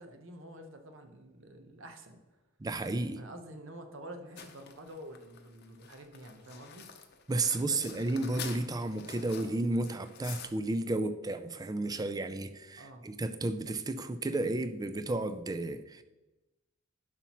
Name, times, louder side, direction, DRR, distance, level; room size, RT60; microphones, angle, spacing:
voice 1, 0.0-2.2 3.2-6.9 7.7-7.8 12.8-13.1, right 1 dB, 65° right, 6 dB, 1.0 m, -48 dB
voice 2, 2.6-3.2 7.3-16.0, right 2 dB, 20° right, 10 dB, 0.4 m, -32 dB
sound 1, 4.4-10.5, left 7 dB, 55° left, 0.8 m, -47 dB
11.0 x 5.7 x 3.0 m, 1.1 s
head